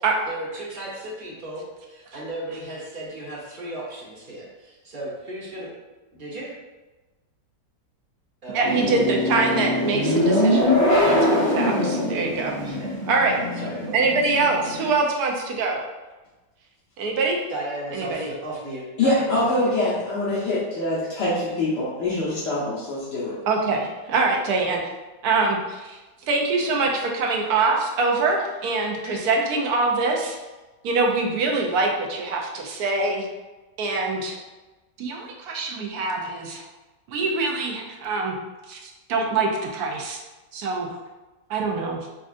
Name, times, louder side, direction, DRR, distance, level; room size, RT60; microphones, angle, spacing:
voice 1, 0.3-5.7 6.1-6.5 8.4-8.6 12.6-12.9 13.3-14.0 17.5-20.0, right 1 dB, 35° right, -6 dB, 1.1 m, -35 dB
voice 2, 8.5-12.8 13.1-13.4 13.9-15.8 17.0-17.4 17.9-18.3 23.5-24.8 25.2-26.0 26.3-30.4 30.8-33.3 33.8-34.4 35.0-36.6 37.1-38.3 38.7-40.2 40.5-40.9 41.5-42.0, right 3 dB, 70° right, 0 dB, 1.1 m, -24 dB
sound 1, 8.6-14.9, left 1 dB, 25° left, 0.3 m, -23 dB
voice 3, 19.0-23.4 27.4-27.5 29.0-29.2, left 2 dB, 80° left, -8 dB, 1.4 m, -24 dB
5.2 x 2.4 x 2.5 m, 1.2 s
omnidirectional pair, 1.8 m